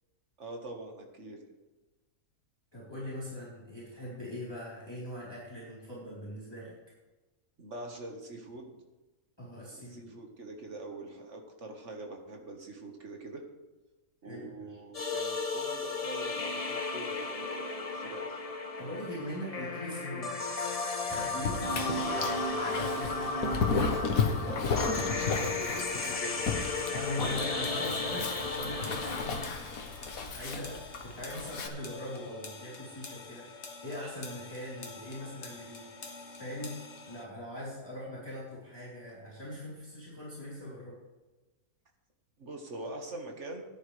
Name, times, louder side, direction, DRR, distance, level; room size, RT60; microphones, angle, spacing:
voice 1, 0.4-1.4 7.6-8.7 9.7-13.5 14.2-18.4 24.4-25.0 25.3-26.7 42.4-43.7, right 2 dB, 50° right, 2 dB, 1.8 m, -43 dB
voice 2, 2.7-6.7 9.4-10.1 14.2-14.8 18.8-20.4 21.1-23.7 26.9-36.8 37.0-41.0, left 1 dB, 15° left, -9 dB, 3.9 m, -41 dB
sound 1, 14.9-29.5, left 3 dB, 35° left, 0.7 m, -34 dB
Dog, 21.1-31.7, left 5 dB, 65° left, 1.6 m, -34 dB
sound 2, 27.6-37.2, left 4 dB, 50° left, 1.5 m, -47 dB
17.0 x 10.5 x 3.3 m, 1.2 s
omnidirectional pair, 1.6 m